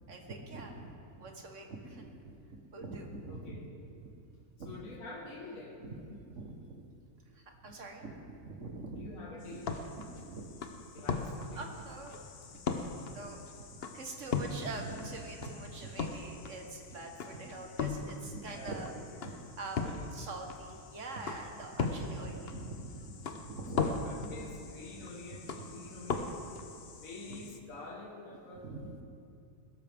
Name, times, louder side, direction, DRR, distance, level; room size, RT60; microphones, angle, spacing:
voice 1, 0.1-3.6 3.9-4.1 4.6-4.7 5.8-6.8 7.3-8.1 8.4-9.1 9.5-9.6 10.0-10.5 11.0-11.1 11.5-12.2 12.5-12.6 13.1-18.9 19.2-24.3 25.5-25.8 27.3-27.4 28.6-29.0, right 2 dB, 55° right, 2 dB, 1.8 m, -44 dB
voice 2, 3.3-3.6 4.7-5.8 9.0-9.7 10.9-11.6 18.4-18.9 19.8-20.0 23.7-26.4 27.0-28.7, left 2 dB, 65° left, -3 dB, 2.1 m, -47 dB
sound 1, 9.4-27.6, left 4 dB, 50° left, 1.0 m, -39 dB
21.0 x 13.0 x 3.7 m, 2.6 s
omnidirectional pair, 1.6 m